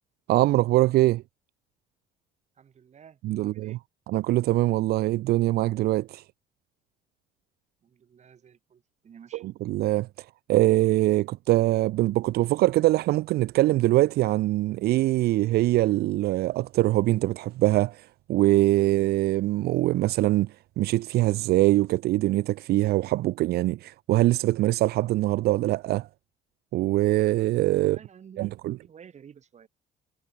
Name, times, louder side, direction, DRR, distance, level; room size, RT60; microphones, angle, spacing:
voice 1, 0.3-1.2 3.2-3.8 4.1-6.2 9.4-26.1 26.7-28.0 28.4-28.8, right 17 dB, 70° right, 0.6 m, -23 dB
voice 2, 2.6-3.8 7.8-9.4 27.8-29.7, right 7 dB, 40° right, 4.4 m, -52 dB
cardioid pair, 110°, 17 cm